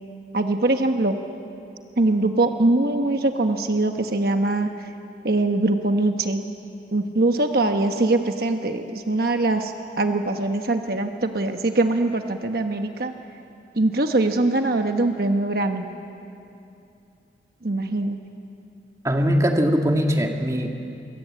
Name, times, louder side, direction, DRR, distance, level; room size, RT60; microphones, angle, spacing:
voice 1, 0.3-1.2 2.0-4.7 5.2-6.4 6.9-13.1 13.8-15.8 17.6-18.2, right 2 dB, 55° right, 5 dB, 1.1 m, -22 dB
voice 2, 19.0-20.7, equal, 20° right, 2 dB, 1.9 m, -21 dB
27.0 x 23.5 x 8.5 m, 2.7 s
head